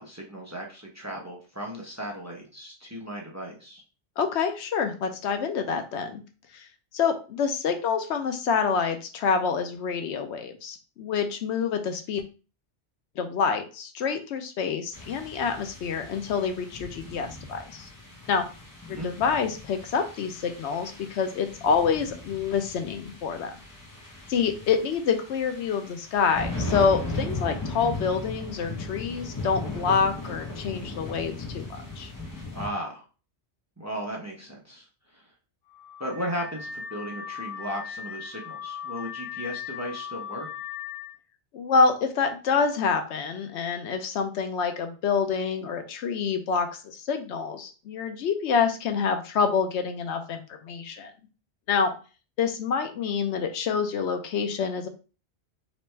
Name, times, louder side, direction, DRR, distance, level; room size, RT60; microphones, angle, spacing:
voice 1, 0.0-3.8 18.9-19.1 32.5-33.0 33.8-34.9 35.1-35.2 36.0-40.5, equal, 15° right, -1 dB, 0.7 m, -36 dB
voice 2, 4.2-6.2 6.5-6.7 6.9-12.2 13.2-17.9 18.3-18.5 18.9-23.5 24.3-32.1 41.5-51.1 51.7-51.9 52.4-54.9, left 5 dB, 80° left, 7 dB, 0.9 m, -27 dB
sound 1, 14.9-32.7, left 2 dB, 20° left, 0.8 m, -37 dB
Car / Alarm, 35.7-41.1, left 7 dB, 55° left, 1.6 m, -38 dB
3.3 x 3.1 x 3.2 m, 0.35 s
omnidirectional pair, 1.1 m